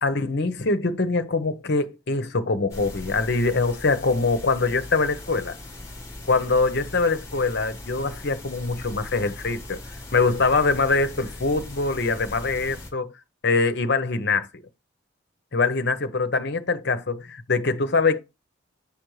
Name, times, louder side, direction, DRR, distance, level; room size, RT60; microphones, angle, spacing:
voice 1, 0.0-5.5 6.3-9.8 10.1-13.1 13.4-14.5 15.5-18.2, left 3 dB, 55° left, 0.8 m, -23 dB
sound 1, 2.7-12.9, left 2 dB, 15° left, 1.4 m, -39 dB
7.2 x 5.1 x 3.1 m
head